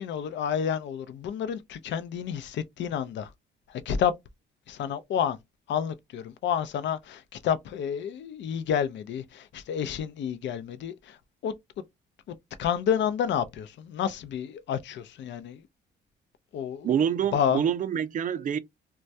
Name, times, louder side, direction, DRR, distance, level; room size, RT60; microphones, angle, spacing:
voice 1, 0.0-3.3 3.7-4.1 4.7-5.4 5.7-11.2 11.4-11.5 12.3-15.6 16.5-16.9 17.3-17.6, left 8 dB, 65° left, 0.5 m, -30 dB
voice 2, 16.8-18.6, right 8 dB, 40° right, 0.4 m, -26 dB
2.2 x 2.1 x 2.6 m
cardioid pair, 90°, 20 cm